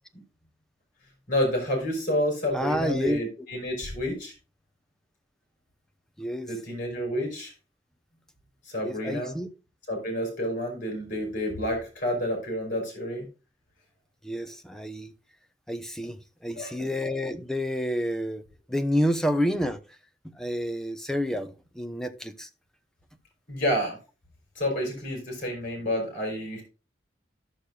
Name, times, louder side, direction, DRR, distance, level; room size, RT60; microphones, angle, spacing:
voice 1, 1.3-4.3 6.5-7.5 8.6-9.3 9.9-13.3 16.5-16.9 23.5-24.0 24.5-26.6, equal, 45° left, 4.4 m, -29 dB
voice 2, 2.5-3.2 6.2-6.5 8.8-9.5 14.2-15.1 15.7-16.2 16.4-18.4 18.7-19.8 20.3-22.5, equal, 5° left, 0.7 m, -29 dB
14.5 x 6.7 x 2.3 m
head